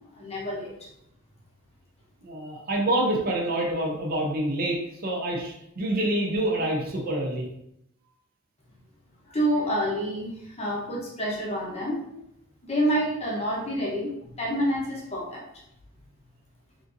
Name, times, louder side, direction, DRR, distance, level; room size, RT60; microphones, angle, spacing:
voice 1, 0.1-0.9 9.3-12.1 12.7-15.4, equal, 30° left, -3 dB, 0.7 m, -28 dB
voice 2, 2.2-7.5, right 1 dB, 40° right, -1 dB, 0.6 m, -27 dB
3.5 x 2.6 x 2.6 m, 0.78 s
head